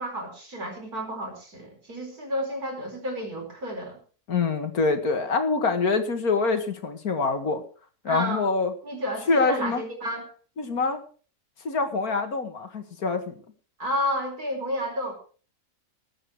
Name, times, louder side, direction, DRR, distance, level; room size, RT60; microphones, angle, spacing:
voice 1, 0.0-4.0 8.1-8.4 8.8-10.3 13.8-15.1, equal, 75° right, 3 dB, 5.3 m, -31 dB
voice 2, 4.3-7.6 8.0-8.7 9.3-9.8 10.6-11.0 11.6-13.4, left 4 dB, 70° left, 7 dB, 2.3 m, -25 dB
20.0 x 9.0 x 4.8 m, 0.40 s
omnidirectional pair, 1.6 m